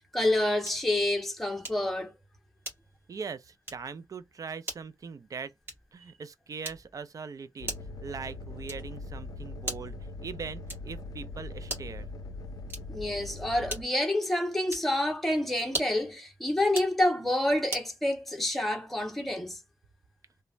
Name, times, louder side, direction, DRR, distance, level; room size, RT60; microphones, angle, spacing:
voice 1, 0.1-2.1 12.9-19.6, left 1 dB, 5° left, 0.7 m, -28 dB
sound 1, 0.6-0.9 1.6-2.0 2.6-3.1 3.6-3.9 4.6-4.9 5.6-6.0 6.6-7.0 7.6-8.0 8.6-9.0 9.6-10.0 10.7-11.0 11.6-12.0 12.6-13.1 13.7-14.1 14.7-15.0 15.6-16.1 16.6-17.0 17.7-17.9, right 1 dB, 35° right, 1.4 m, -39 dB
voice 2, 3.1-5.5 5.9-7.8 8.0-10.0 10.2-12.1, right 5 dB, 55° right, 0.4 m, -41 dB
sound 2, 7.6-13.8, left 2 dB, 70° left, 0.4 m, -41 dB
3.1 x 2.1 x 2.4 m
wide cardioid pair, 140°, 7 cm